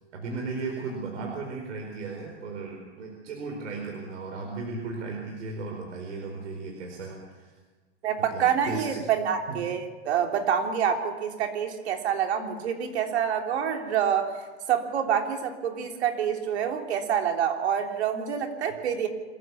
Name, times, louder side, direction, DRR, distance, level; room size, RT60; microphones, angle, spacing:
voice 1, 0.1-7.5 8.2-9.0 9.5-9.6, right 3 dB, 90° right, 1 dB, 4.8 m, -36 dB
voice 2, 8.0-14.3 14.7-19.1, right 8 dB, 65° right, 3 dB, 3.6 m, -27 dB
26.0 x 14.5 x 7.2 m, 1.3 s
supercardioid pair, 160°, 35 cm